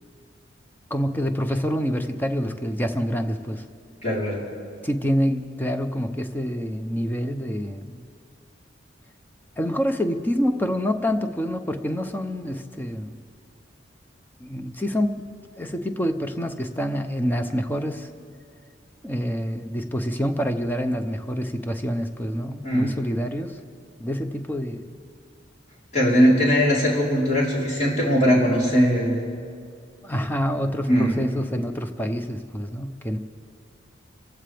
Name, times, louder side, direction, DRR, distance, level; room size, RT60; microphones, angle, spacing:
voice 1, 0.9-3.6 4.8-7.9 9.6-13.1 14.4-15.2 15.6-18.1 19.0-23.6 24.0-25.0 30.0-33.2, equal, 10° left, 7 dB, 0.7 m, -27 dB
voice 2, 4.0-4.4 22.6-22.9 25.9-29.2 30.9-31.1, equal, 40° left, -6 dB, 3.9 m, -20 dB
27.0 x 15.5 x 3.4 m, 2.3 s
head